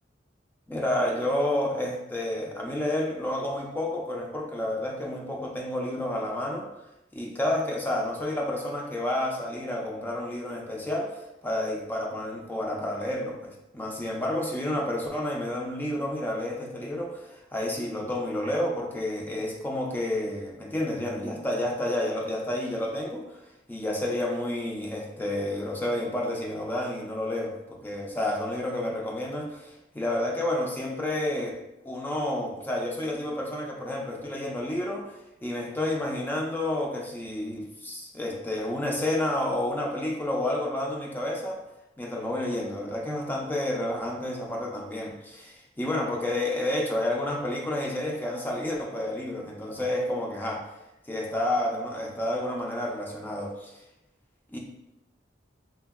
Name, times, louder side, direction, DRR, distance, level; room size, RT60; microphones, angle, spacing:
voice 1, 0.7-6.7 7.1-23.4 23.7-31.6 31.9-35.1 35.4-41.6 42.0-50.7 51.1-53.7 54.5-54.6, left 1 dB, 10° left, -1 dB, 0.4 m, -30 dB
3.4 x 2.2 x 2.2 m, 0.90 s
head